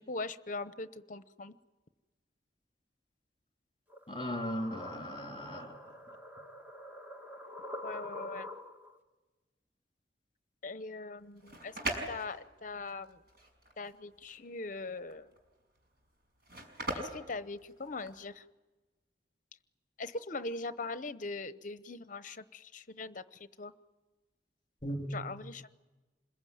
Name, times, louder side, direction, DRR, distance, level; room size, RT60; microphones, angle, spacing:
voice 1, 0.0-1.6 7.8-8.5 10.6-13.2 13.8-15.3 16.9-18.4 20.0-23.7 25.1-25.7, left 3 dB, 45° left, 13 dB, 0.9 m, -41 dB
sound 1, 3.9-9.0, left 1 dB, 10° right, 1.6 m, -46 dB
voice 2, 4.1-5.8 24.8-25.4, equal, 30° left, 3 dB, 3.7 m, -37 dB
sound 2, 11.2-18.3, right 1 dB, 60° right, 5.7 m, -41 dB
27.0 x 21.5 x 9.4 m, 1.2 s
head